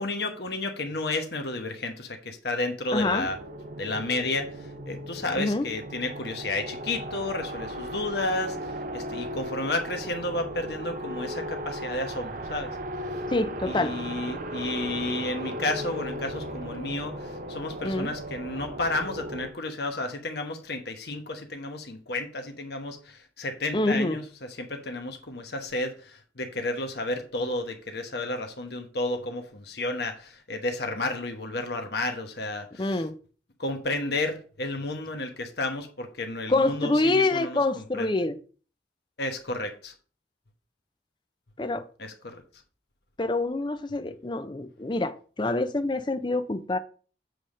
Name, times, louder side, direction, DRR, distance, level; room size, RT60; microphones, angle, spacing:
voice 1, 0.0-3.4 3.8-13.1 13.7-24.2 24.6-33.0 33.6-38.1 39.2-39.9 42.0-42.4, left 2 dB, 60° left, 1.1 m, -32 dB
voice 2, 2.9-3.3 5.3-5.7 13.3-13.9 17.8-18.1 23.7-24.2 32.8-33.1 36.5-38.4 41.6-41.9 43.2-46.8, left 2 dB, 25° left, 0.5 m, -26 dB
sound 1, 3.0-19.5, right 1 dB, 45° right, 0.6 m, -36 dB
7.7 x 3.5 x 6.4 m
head